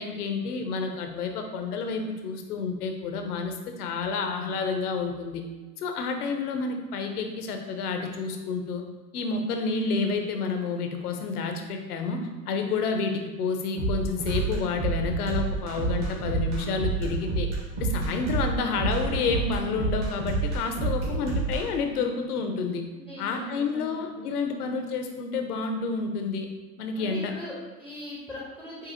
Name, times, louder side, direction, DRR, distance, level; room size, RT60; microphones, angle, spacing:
voice 1, 0.0-5.4 5.8-8.8 9.1-17.5 17.8-22.8 23.2-26.5 26.8-27.3, left 4 dB, 65° left, 5 dB, 0.8 m, -29 dB
sound 1, 13.8-21.6, right 3 dB, 50° right, 1.5 m, -28 dB
voice 2, 22.9-24.8 27.0-28.9, equal, ahead, -6 dB, 0.7 m, -41 dB
6.6 x 2.7 x 2.7 m, 1.2 s
hypercardioid pair, 100°, 50 cm